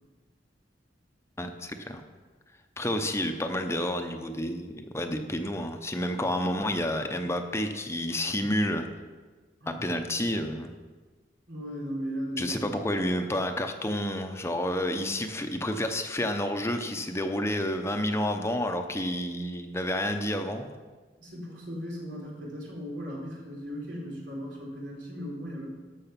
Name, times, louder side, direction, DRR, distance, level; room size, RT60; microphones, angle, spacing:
voice 1, 1.4-2.0 2.8-8.9 9.7-10.7 12.4-20.7, left 1 dB, 15° left, 6 dB, 0.7 m, -30 dB
voice 2, 11.5-12.8 21.2-25.7, equal, 90° right, -3 dB, 3.5 m, -37 dB
13.5 x 6.3 x 5.8 m, 1.3 s
head